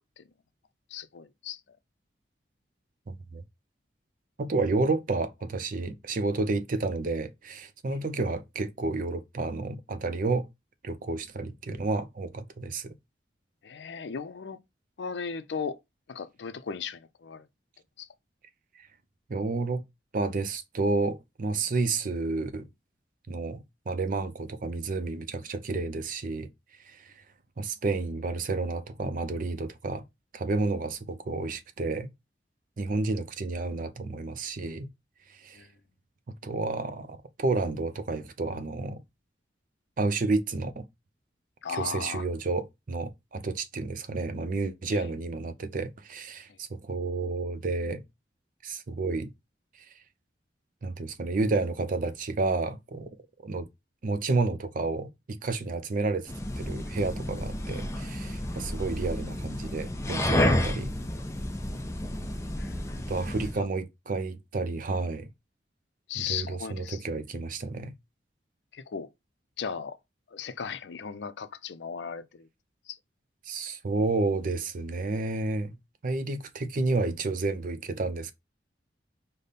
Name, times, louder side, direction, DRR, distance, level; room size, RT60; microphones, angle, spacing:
voice 1, 0.9-1.6 13.6-14.6 15.0-15.8 16.1-17.5 18.0-18.1 35.6-35.7 41.6-42.2 44.9-45.1 62.6-62.7 66.1-67.0 68.7-69.1 69.6-70.0 70.3-72.5 72.9-73.0, left 6 dB, 75° left, 0.5 m, -36 dB
voice 2, 3.1-3.4 4.4-10.5 10.8-13.0 19.3-19.8 20.1-22.7 23.3-26.5 26.9-27.1 27.6-30.0 30.3-32.1 32.8-34.9 35.4-35.6 36.4-39.0 40.0-40.8 41.7-48.0 48.6-49.3 50.8-53.1 53.4-53.7 54.0-56.3 56.6-60.9 63.1-65.3 66.1-67.9 73.5-75.7 76.0-78.3, right 3 dB, 50° right, 0.5 m, -30 dB
sound 1, 56.3-63.6, left 1 dB, 15° left, 0.5 m, -30 dB
5.1 x 2.1 x 4.0 m
head